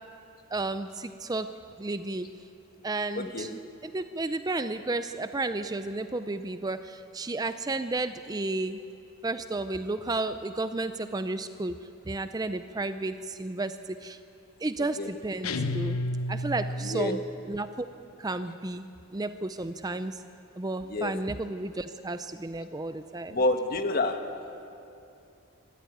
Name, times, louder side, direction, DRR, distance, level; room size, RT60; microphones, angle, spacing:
voice 1, 0.5-1.5 1.8-2.3 2.8-3.5 3.8-8.8 9.2-14.2 14.6-16.0 16.3-17.2 17.5-17.9 18.2-20.2 20.6-23.4, right 2 dB, 20° right, 10 dB, 0.5 m, -32 dB
voice 2, 3.2-3.5 15.0-15.1 16.8-17.2 20.9-21.1 23.3-24.3, left 2 dB, 45° left, 6 dB, 1.4 m, -28 dB
sound 1, 15.4-17.2, left 1 dB, 90° left, 0.9 m, -31 dB
24.5 x 13.5 x 9.3 m, 2.7 s
head